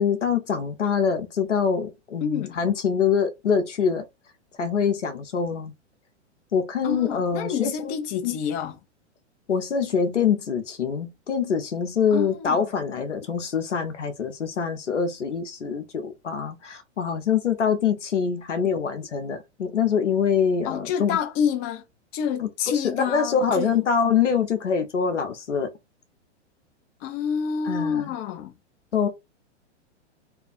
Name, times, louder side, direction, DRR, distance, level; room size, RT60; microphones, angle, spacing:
voice 1, 0.0-4.0 4.6-5.7 6.5-7.9 8.2-8.4 9.5-21.2 22.8-25.7 27.7-28.1 28.9-29.1, left 6 dB, 85° left, 0.7 m, -24 dB
voice 2, 2.2-2.6 6.8-8.8 12.1-12.6 20.6-21.8 22.1-23.7 27.0-28.5, left 7 dB, 25° left, 0.4 m, -28 dB
2.6 x 2.3 x 2.4 m
figure-of-eight pair, 105°, 35 cm